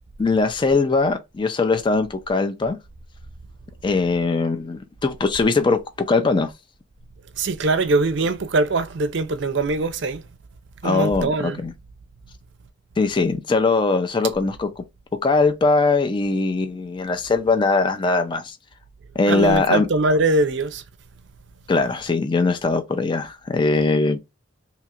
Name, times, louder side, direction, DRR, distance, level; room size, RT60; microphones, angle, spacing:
voice 1, 0.2-2.8 3.8-5.8 6.1-6.5 10.8-11.7 13.0-14.8 15.2-18.6 19.2-19.9 21.7-24.2, left 3 dB, 25° left, 0.4 m, -21 dB
voice 2, 7.4-10.2 10.8-11.6 19.3-20.8, right 2 dB, 60° right, 0.5 m, -22 dB
2.9 x 2.4 x 4.2 m
head